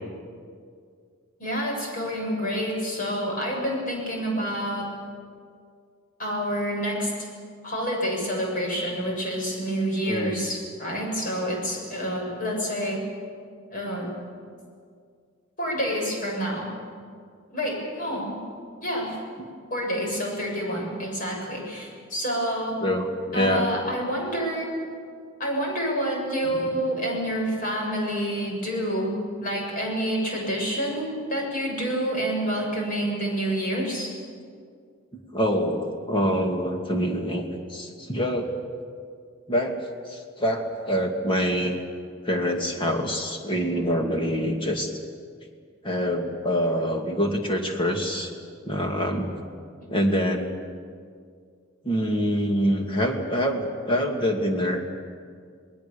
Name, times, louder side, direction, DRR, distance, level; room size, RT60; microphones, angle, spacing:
voice 1, 1.4-4.9 6.2-7.1 7.6-13.0 13.7-14.1 15.6-16.7 17.5-18.3 18.8-19.2 19.7-22.8 23.3-24.8 25.4-34.1, equal, 45° left, -1 dB, 7.1 m, -28 dB
voice 2, 23.3-23.6 35.3-38.5 39.5-39.8 40.1-41.8 42.2-44.9 45.8-48.3 48.6-49.3 49.9-50.5 51.8-54.8, equal, 25° left, 2 dB, 2.6 m, -25 dB
28.0 x 20.0 x 7.1 m, 2.2 s
head